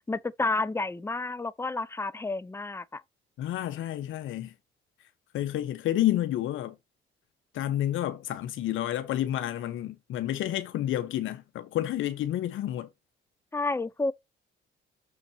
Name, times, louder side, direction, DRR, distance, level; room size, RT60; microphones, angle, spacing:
voice 1, 0.1-3.0 13.5-14.1, left 3 dB, 15° left, 0.5 m, -30 dB
voice 2, 3.4-4.5 5.3-6.7 7.5-12.9, left 12 dB, 80° left, 0.9 m, -30 dB
6.7 x 4.2 x 4.2 m
cardioid pair, 90°, 20 cm